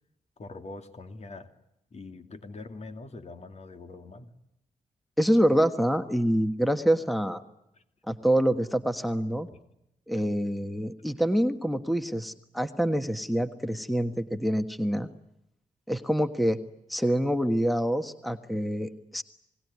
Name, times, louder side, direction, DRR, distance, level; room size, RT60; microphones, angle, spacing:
voice 1, 0.4-1.5 1.9-4.3 7.7-7.8 9.5-9.6, left 3 dB, 55° left, 8 dB, 2.6 m, -43 dB
voice 2, 5.2-7.4 8.1-9.5 10.1-15.1 15.9-16.6 16.9-19.2, equal, ahead, 10 dB, 1.4 m, -26 dB
27.5 x 20.0 x 9.6 m, 0.84 s
cardioid pair, 70°, 14 cm